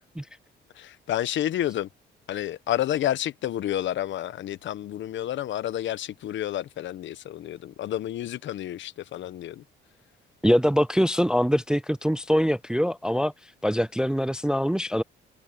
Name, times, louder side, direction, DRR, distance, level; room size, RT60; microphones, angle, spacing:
voice 1, 0.7-1.9 2.3-9.6, left 12 dB, 70° left, 0.9 m, -30 dB
voice 2, 10.4-13.3 13.6-15.0, equal, 5° right, 0.3 m, -23 dB
cardioid pair, 90°, 20 cm